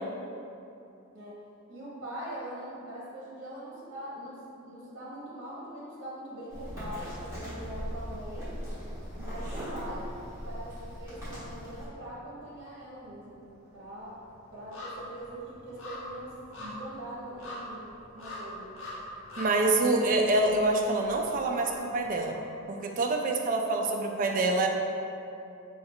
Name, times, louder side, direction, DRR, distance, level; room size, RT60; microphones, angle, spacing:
voice 1, 1.7-8.5 9.1-10.1 10.4-13.4 13.7-14.2 14.5-18.7, right 1 dB, 60° right, -6 dB, 0.9 m, -42 dB
sound 1, 6.5-11.9, equal, 15° right, 1.2 m, -39 dB
sound 2, 12.0-12.5 12.8-22.8 23.1-23.2, left 1 dB, 60° left, 0.8 m, -44 dB
voice 2, 19.4-22.4 22.7-24.7, right 2 dB, 40° right, 2 dB, 0.3 m, -26 dB
4.1 x 2.3 x 3.6 m, 2.7 s
head